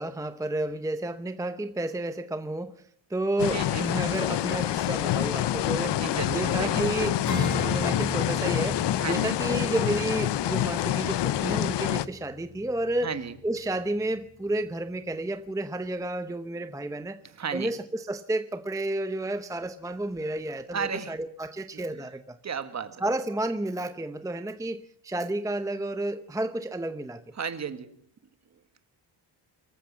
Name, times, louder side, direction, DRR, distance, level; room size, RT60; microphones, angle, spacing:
voice 1, 0.0-6.0 6.3-7.2 7.6-13.1 13.4-17.2 17.5-22.4 23.0-27.2, right 1 dB, 5° right, 10 dB, 0.8 m, -31 dB
sound 1, 3.4-12.0, left 12 dB, 65° left, 0.9 m, -27 dB
voice 2, 3.4-3.9 5.8-6.9 9.0-9.4 13.0-13.3 17.2-17.7 20.7-21.2 21.7-21.8 22.4-23.0 27.4-27.9, right 6 dB, 35° right, 10 dB, 1.8 m, -34 dB
Acoustic guitar / Strum, 7.2-13.2, left 3 dB, 40° left, 6.4 m, -35 dB
24.5 x 14.5 x 7.4 m, 0.64 s
cardioid pair, 150°, 45 cm